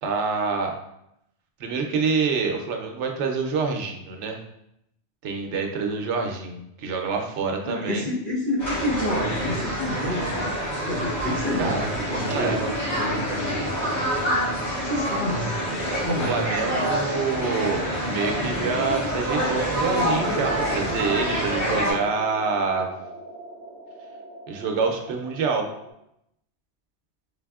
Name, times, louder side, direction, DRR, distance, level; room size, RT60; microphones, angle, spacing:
voice 1, 0.0-0.7 1.6-4.4 5.2-8.0 11.6-11.8 12.3-12.6 16.1-22.9 24.5-25.7, right 5 dB, 90° right, 3 dB, 0.9 m, -26 dB
voice 2, 7.6-10.5 10.9-13.9 14.8-15.5 16.0-16.4, left 1 dB, 45° left, -6 dB, 1.2 m, -29 dB
sound 1, 8.6-21.9, equal, 70° left, 1.8 m, -27 dB
sound 2, 19.9-25.9, right 2 dB, ahead, 0.8 m, -38 dB
4.0 x 3.3 x 2.3 m, 0.79 s
omnidirectional pair, 1.2 m